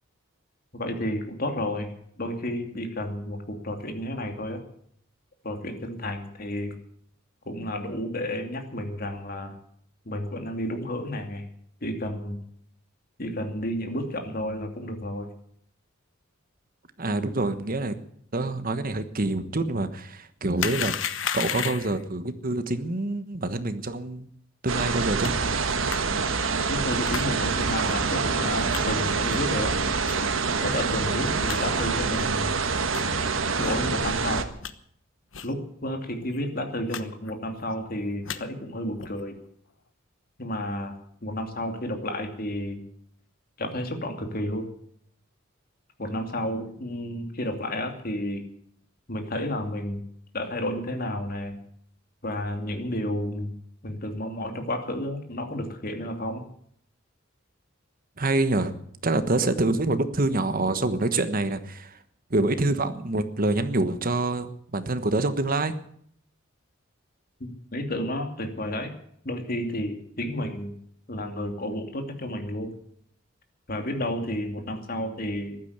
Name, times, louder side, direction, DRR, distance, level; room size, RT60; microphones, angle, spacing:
voice 1, 0.7-4.6 5.4-6.8 7.5-9.5 10.0-11.5 11.8-12.4 13.2-15.3 26.7-29.8 30.6-32.5 33.5-34.5 35.4-39.4 40.4-42.8 43.6-44.7 46.0-48.4 49.1-50.1 50.3-51.6 52.2-53.5 53.8-56.4 67.4-68.9 69.2-70.8 71.1-72.7 73.7-75.6, left 1 dB, 45° left, 5 dB, 2.7 m, -31 dB
voice 2, 17.0-18.0 18.3-24.3 24.6-25.4 58.2-58.7 59.0-62.0 62.3-65.7, right 2 dB, 45° right, 11 dB, 1.3 m, -26 dB
sound 1, 20.6-22.0 25.2-25.3 25.9-26.0 27.0-27.3 27.8-27.9 28.7-28.8 29.3-29.5 30.0-30.2 30.7-30.8 31.1-31.2 31.5-31.6 32.1-32.3 32.9-33.1 33.6-33.7 34.2-34.7 35.3-35.5 35.8-35.9 36.2-36.4 36.9-37.0 37.3-37.7 38.1-38.4 39.0-39.2, left 8 dB, 65° left, 1.1 m, -33 dB
sound 2, 24.7-34.4, right 4 dB, 75° right, 1.4 m, -26 dB
14.5 x 12.0 x 8.1 m, 0.65 s
head